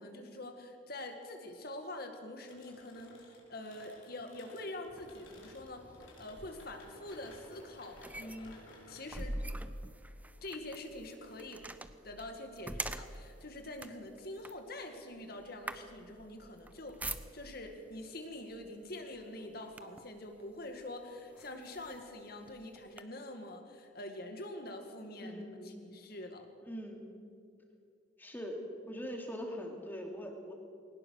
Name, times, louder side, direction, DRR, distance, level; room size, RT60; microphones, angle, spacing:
voice 1, 0.0-5.9 6.2-9.4 10.4-11.6 12.0-26.5, left 1 dB, 50° left, 5 dB, 2.0 m, -45 dB
sound 1, 2.4-11.1, left 1 dB, 80° left, 4.6 m, -58 dB
sound 2, 4.9-17.7 18.6-18.8 19.2-20.2 20.8-20.9 21.4-23.0, right 1 dB, 10° right, 0.6 m, -45 dB
voice 2, 25.2-25.7 26.6-27.1 28.2-30.5, equal, 10° left, 1 dB, 2.5 m, -42 dB
21.5 x 19.0 x 6.4 m, 2.3 s
head